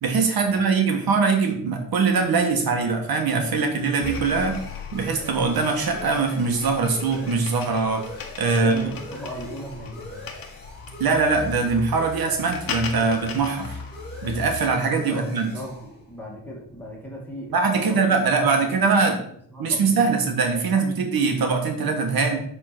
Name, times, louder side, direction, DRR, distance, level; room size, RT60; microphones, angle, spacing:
voice 1, 0.0-4.6 4.9-8.0 8.4-8.9 11.0-13.8 14.2-15.5 17.5-19.2 19.6-22.4, right 4 dB, 80° right, 3 dB, 1.5 m, -22 dB
sound 1, 2.1-17.4, left 1 dB, 25° left, 2.0 m, -43 dB
sound 2, 4.0-14.6, left 5 dB, 70° left, 1.2 m, -37 dB
voice 2, 8.4-10.3 15.1-19.1 19.5-20.2 20.6-21.0, equal, 5° left, -3 dB, 2.1 m, -38 dB
7.3 x 3.9 x 6.0 m, 0.66 s
wide cardioid pair, 135°, 36 cm